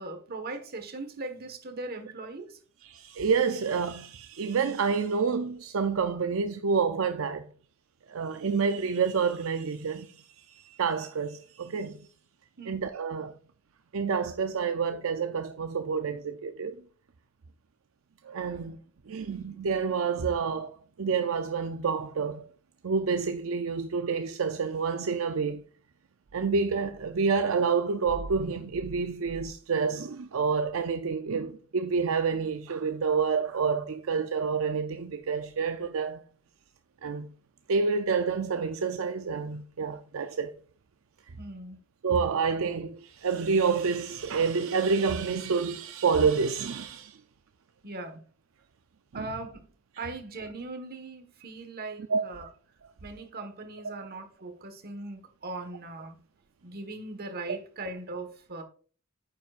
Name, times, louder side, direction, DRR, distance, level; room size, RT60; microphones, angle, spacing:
voice 1, 0.0-2.6 12.6-12.8 41.4-41.8 47.8-48.2 49.1-49.7 50.0-52.5 53.0-56.2 56.6-58.6, right 2 dB, 50° right, 1.5 m, -39 dB
voice 2, 2.8-7.5 8.1-12.0 12.7-13.3 13.9-16.8 18.2-18.8 19.1-22.5 22.8-25.6 26.3-36.2 37.0-37.3 37.7-40.5 42.0-47.2 49.1-49.3 52.1-52.3, right 5 dB, 75° right, 0.5 m, -28 dB
9.3 x 7.4 x 2.5 m
head